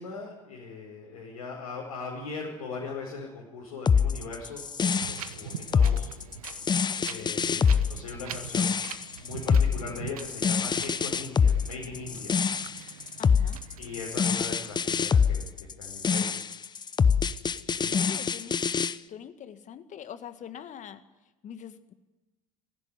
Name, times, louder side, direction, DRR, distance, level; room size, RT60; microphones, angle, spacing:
voice 1, 0.0-6.1 7.0-8.7 9.2-12.4 13.8-16.5 17.7-18.1, left 4 dB, 75° left, -4 dB, 5.3 m, -40 dB
sound 1, 3.9-18.9, left 6 dB, 25° left, 0.8 m, -25 dB
Wind, 4.9-14.8, right 9 dB, 80° right, 1.1 m, -43 dB
voice 2, 6.9-8.1 13.2-13.6 17.9-18.6 19.1-21.0 21.4-21.9, left 9 dB, 40° left, 10 dB, 1.9 m, -44 dB
23.5 x 15.5 x 9.6 m, 1.1 s
hypercardioid pair, 70°, 18 cm